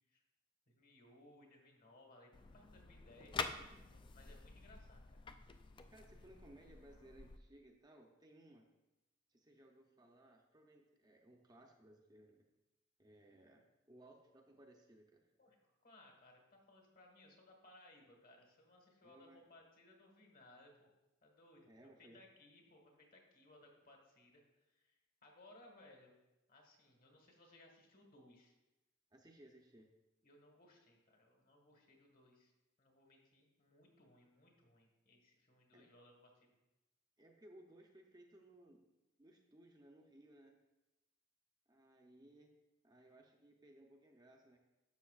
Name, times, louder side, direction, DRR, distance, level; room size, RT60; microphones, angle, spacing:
voice 1, 0.7-3.4 3.7-5.2 15.4-15.6 15.8-20.9 21.2-21.7 22.0-24.4 24.7-24.9 25.2-26.1 26.5-28.5 30.2-32.5 32.8-36.6, left 1 dB, 45° left, 2 dB, 1.5 m, -64 dB
sound 1, 2.3-7.4, left 4 dB, 25° left, 0.3 m, -48 dB
voice 2, 5.9-8.7 9.3-12.4 13.0-15.3 19.0-19.5 21.6-22.2 29.1-29.9 35.7-35.9 37.2-38.9 39.2-40.6 41.7-42.5 42.8-44.6, right 1 dB, 20° right, 1 dB, 0.6 m, -62 dB
11.5 x 6.8 x 2.4 m, 0.98 s
head